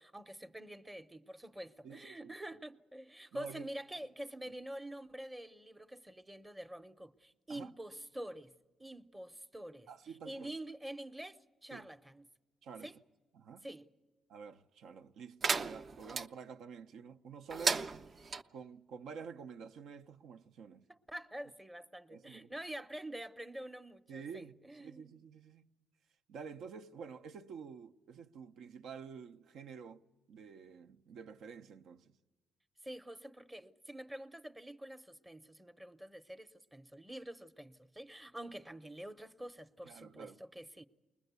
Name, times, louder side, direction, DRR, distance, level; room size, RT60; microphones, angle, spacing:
voice 1, 0.0-8.5 8.8-9.9 10.2-12.3 12.8-12.9 13.6-13.9 20.9-25.2 32.8-40.9, right 1 dB, 15° right, 0.8 m, -47 dB
voice 2, 1.8-2.4 3.3-3.7 7.5-7.7 9.9-10.5 11.7-11.9 12.6-12.9 13.3-13.7 14.3-17.9 18.5-20.9 22.1-22.5 24.1-25.7 26.3-32.2 39.8-40.4, right 6 dB, 80° right, 0.7 m, -49 dB
sound 1, 15.4-16.3 17.5-18.4, right 4 dB, 40° right, 0.7 m, -34 dB
21.5 x 20.0 x 8.1 m
cardioid pair, 90°, 0 cm